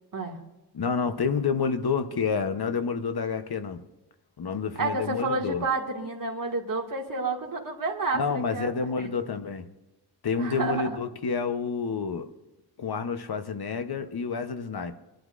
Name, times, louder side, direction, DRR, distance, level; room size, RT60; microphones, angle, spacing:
voice 1, 0.7-3.8 4.4-5.6 8.1-9.7 10.2-12.3 12.8-15.0, left 5 dB, 65° left, 1.1 m, -29 dB
voice 2, 4.8-9.1 10.4-11.0, right 3 dB, 55° right, 2.2 m, -30 dB
24.0 x 11.5 x 2.6 m
wide cardioid pair, 105°, 40 cm